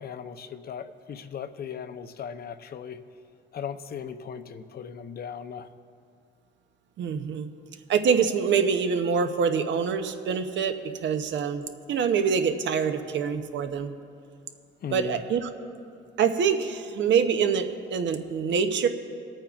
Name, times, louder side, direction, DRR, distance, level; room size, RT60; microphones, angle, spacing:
voice 1, 0.0-3.0 3.5-5.7 14.8-15.2, left 7 dB, 50° left, 10 dB, 0.6 m, -37 dB
voice 2, 7.0-7.5 7.9-10.8 11.0-13.9 14.9-15.5 16.2-18.9, right 6 dB, 65° right, 8 dB, 0.8 m, -25 dB
25.5 x 8.8 x 2.4 m, 2.3 s
cardioid pair, 90°, 20 cm